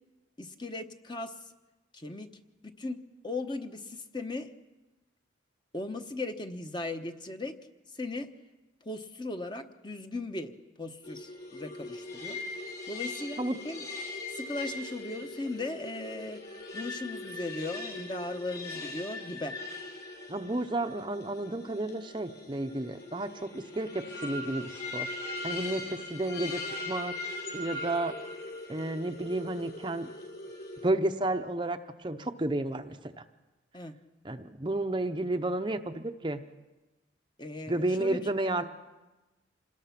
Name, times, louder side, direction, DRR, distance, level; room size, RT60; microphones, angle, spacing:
voice 1, 0.4-1.4 1.9-2.4 2.6-3.0 3.2-4.5 5.7-7.6 7.9-8.3 8.8-10.5 10.8-12.4 12.9-13.8 14.3-16.4 16.7-19.6 33.7-34.0 37.4-38.3, left 2 dB, 25° left, 6 dB, 1.0 m, -37 dB
sound 1, 11.0-30.9, left 2 dB, 60° left, 6.9 m, -40 dB
voice 2, 20.3-25.1 25.4-27.1 27.5-28.2 28.7-30.1 30.8-33.2 34.2-36.4 37.7-38.6, right 2 dB, 25° right, 7 dB, 0.7 m, -32 dB
26.5 x 20.0 x 5.9 m, 1.1 s
head